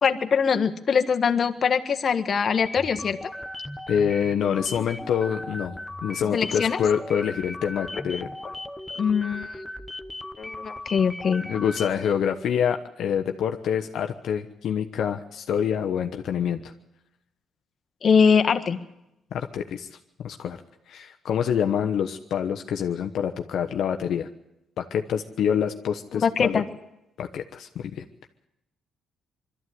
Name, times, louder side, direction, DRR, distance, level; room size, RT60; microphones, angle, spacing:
voice 1, 0.0-3.2 6.3-6.8 8.9-9.6 10.4-11.4 18.0-18.8 26.2-26.6, left 6 dB, 50° left, 8 dB, 1.5 m, -22 dB
sound 1, 2.6-12.1, left 1 dB, 10° left, 1.0 m, -37 dB
voice 2, 3.9-5.8 6.0-8.3 11.4-16.7 19.3-19.9 20.2-20.6 20.9-24.3 24.8-26.6 27.2-28.0, left 8 dB, 70° left, 5 dB, 1.1 m, -26 dB
22.5 x 13.5 x 9.4 m, 0.87 s
cardioid pair, 90°, 0 cm